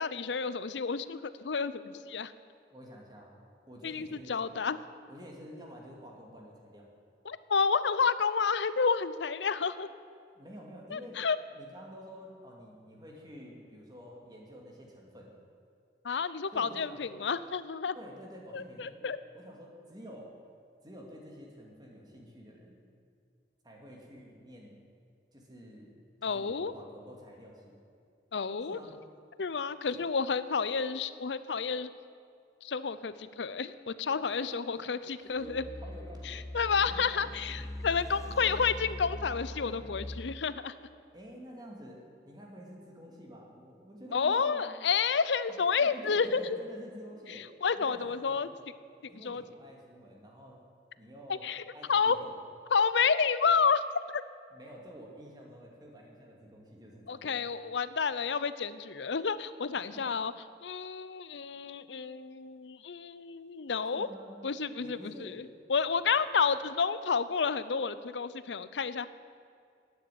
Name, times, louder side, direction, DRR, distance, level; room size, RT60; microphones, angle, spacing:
voice 1, 0.0-2.3 3.8-4.8 7.3-9.9 10.9-11.4 16.0-18.0 18.5-19.2 26.2-26.7 28.3-28.8 29.4-31.9 32.6-35.6 36.3-40.7 44.1-46.4 47.6-48.5 49.1-49.4 51.4-51.6 51.9-52.2 52.7-53.8 54.1-54.2 57.1-60.3 60.6-64.1 64.4-65.4 65.7-69.1, left 5 dB, 85° left, 14 dB, 0.6 m, -30 dB
voice 2, 2.7-3.4 3.7-4.6 5.1-6.9 10.3-11.3 11.5-15.3 16.5-17.2 17.9-19.1 19.3-20.3 20.8-22.8 23.6-24.8 25.3-27.8 28.7-29.0 29.9-30.0 34.2-36.5 36.8-37.6 38.1-38.5 41.1-44.8 45.5-47.5 47.8-48.5 49.1-50.6 51.0-52.4 54.5-57.5 59.9-60.1 63.9-64.4 64.8-65.5, equal, 25° right, -1 dB, 2.4 m, -49 dB
sound 1, 35.4-40.4, left 1 dB, 20° left, 0.6 m, -42 dB
12.0 x 9.4 x 9.3 m, 2.3 s
head